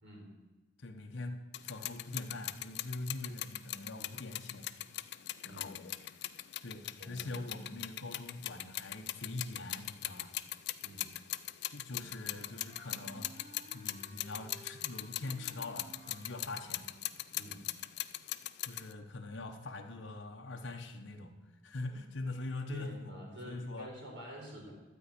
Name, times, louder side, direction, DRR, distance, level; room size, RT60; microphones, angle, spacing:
voice 1, 0.8-4.7 6.6-10.3 11.7-13.4 13.7-16.9 18.6-21.3 21.6-23.9, left 2 dB, 80° left, 4 dB, 1.0 m, -43 dB
sound 1, 1.5-18.9, left 14 dB, 60° left, 0.4 m, -41 dB
voice 2, 5.4-5.8 7.0-7.3 10.8-11.1 17.3-17.6 22.7-24.7, equal, 75° right, -3 dB, 3.5 m, -48 dB
Wind instrument woodwind instrument, 11.9-17.2, right 1 dB, 50° right, 1.7 m, -57 dB
12.5 x 4.7 x 8.4 m, 1.2 s
head